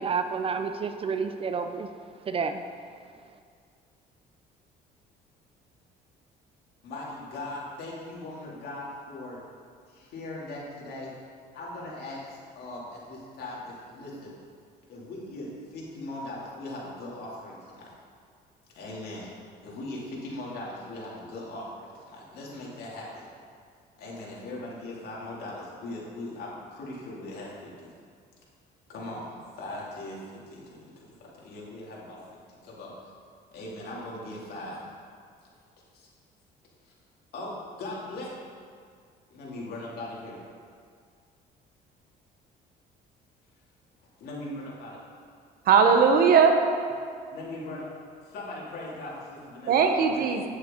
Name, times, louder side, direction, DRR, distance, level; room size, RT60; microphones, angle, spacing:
voice 1, 0.0-1.9 2.3-2.6, right 5 dB, 35° right, 9 dB, 0.4 m, -30 dB
voice 2, 6.8-9.4 9.9-11.1 11.5-14.3 14.9-17.9 18.7-19.3 19.6-23.2 24.0-27.9 28.9-33.1 33.5-34.8 35.9-36.1 36.8-36.9 37.3-38.3 39.3-40.4 44.2-45.0 47.3-47.9 48.2-50.4, left 2 dB, 70° left, -5 dB, 2.6 m, -39 dB
voice 3, 45.6-46.7 49.7-50.5, right 6 dB, 60° right, 5 dB, 1.0 m, -19 dB
9.5 x 8.1 x 3.8 m, 2.1 s
cardioid pair, 110°, 17 cm